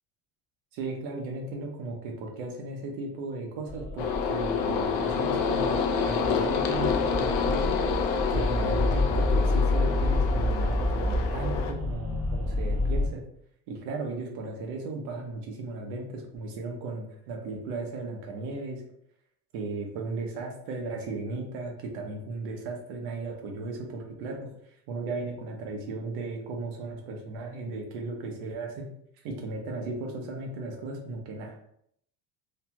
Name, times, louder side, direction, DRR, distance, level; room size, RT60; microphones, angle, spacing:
voice 1, 0.7-7.8 8.3-13.2 13.7-18.8 19.5-24.4 24.9-28.9 29.2-31.7, right 3 dB, 75° right, 2 dB, 0.9 m, -36 dB
sound 1, 3.7-13.1, left 2 dB, 5° right, 0.5 m, -29 dB
sound 2, 4.0-11.7, left 6 dB, 65° left, 0.5 m, -28 dB
3.1 x 2.2 x 2.9 m, 0.70 s
cardioid pair, 160°, 39 cm